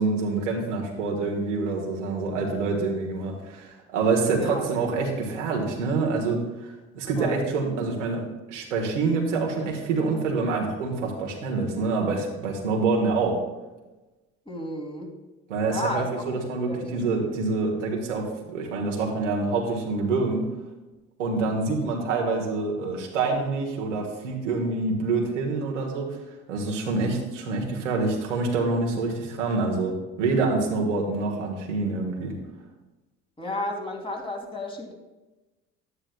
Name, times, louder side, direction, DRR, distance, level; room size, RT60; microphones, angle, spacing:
voice 1, 0.0-13.4 15.5-20.4 21.2-26.2 26.5-32.3, right 3 dB, 85° right, 0 dB, 1.4 m, -26 dB
voice 2, 4.3-4.6 7.2-7.4 14.5-15.1 15.7-16.4 16.7-17.0 33.4-34.9, left 1 dB, 15° left, 1 dB, 2.1 m, -32 dB
11.0 x 9.8 x 2.2 m, 1.1 s
hypercardioid pair, 60°, 36 cm